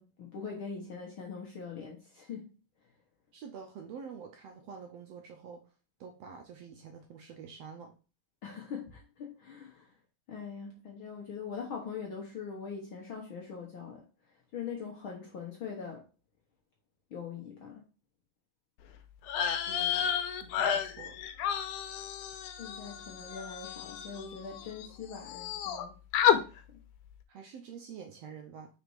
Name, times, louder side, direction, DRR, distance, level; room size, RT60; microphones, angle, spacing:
voice 1, 0.0-2.5 8.4-10.0 10.3-14.0 14.5-16.0 17.1-17.8 22.6-25.9 26.3-26.8, left 6 dB, 60° left, 1.4 m, -42 dB
voice 2, 3.3-5.6 6.0-8.0 19.7-20.1 20.4-21.2 27.3-28.7, right 6 dB, 75° right, 1.6 m, -47 dB
sound 1, 19.2-24.9 25.1-25.8 26.1-26.4, left 9 dB, 85° left, 2.2 m, -31 dB
5.1 x 4.2 x 4.6 m
omnidirectional pair, 3.6 m